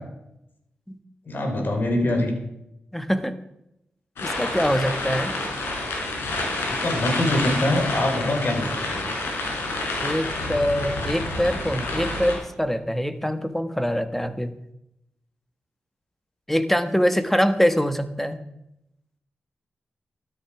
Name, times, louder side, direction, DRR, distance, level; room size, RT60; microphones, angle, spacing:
voice 1, 1.3-2.3 6.7-9.0, left 1 dB, 55° left, 4 dB, 4.2 m, -24 dB
voice 2, 2.9-3.4 4.2-5.4 10.0-14.5 16.5-18.4, equal, 5° left, 10 dB, 1.5 m, -24 dB
sound 1, 4.2-12.3, left 2 dB, 90° left, 4.7 m, -28 dB
13.5 x 13.0 x 4.9 m, 0.83 s
cardioid pair, 50°, 4 cm